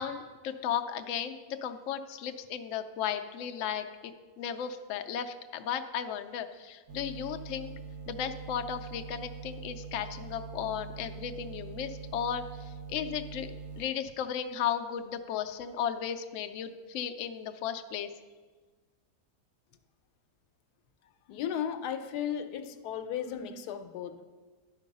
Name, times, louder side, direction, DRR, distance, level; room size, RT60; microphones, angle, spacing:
voice 1, 0.0-7.7 8.1-18.1, left 8 dB, 70° left, 0.8 m, -35 dB
sound 1, 6.9-13.9, right 5 dB, 75° right, 1.1 m, -43 dB
voice 2, 21.3-24.2, left 9 dB, 85° left, 1.2 m, -35 dB
11.0 x 4.5 x 5.3 m
omnidirectional pair, 1.7 m